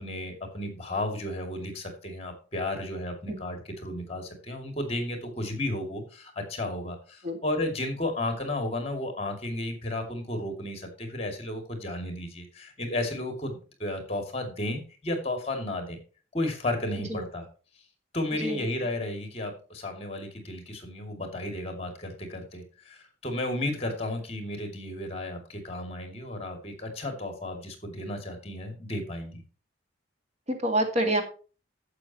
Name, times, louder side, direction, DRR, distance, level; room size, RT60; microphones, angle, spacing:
voice 1, 0.0-16.0 16.3-17.4 18.1-29.4, left 1 dB, 35° left, 5 dB, 2.5 m, -33 dB
voice 2, 18.3-18.7 30.5-31.2, right 1 dB, 35° right, 4 dB, 2.0 m, -27 dB
11.5 x 8.1 x 3.0 m, 0.36 s
head